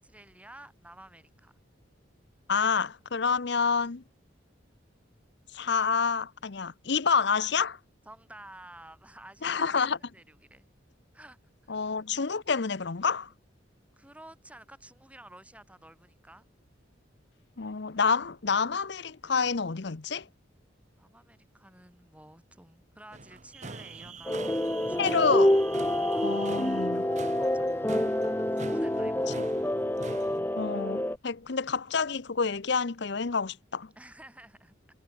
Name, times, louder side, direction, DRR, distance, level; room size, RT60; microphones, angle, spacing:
voice 1, 0.0-1.5 8.1-9.8 10.1-10.7 11.1-11.4 11.6-12.0 14.0-16.5 21.0-25.3 26.1-26.7 27.4-27.8 28.6-29.5 34.0-34.7, right 1 dB, 5° right, 5.2 m, -51 dB
voice 2, 2.5-4.0 5.5-7.8 9.4-10.0 11.7-13.3 17.6-20.2 25.0-25.5 26.2-27.0 29.3-29.4 30.6-33.9, left 5 dB, 60° left, 0.8 m, -28 dB
sound 1, 23.1-30.4, right 3 dB, 35° right, 1.2 m, -44 dB
sound 2, 24.3-31.2, left 1 dB, 10° left, 0.8 m, -27 dB
head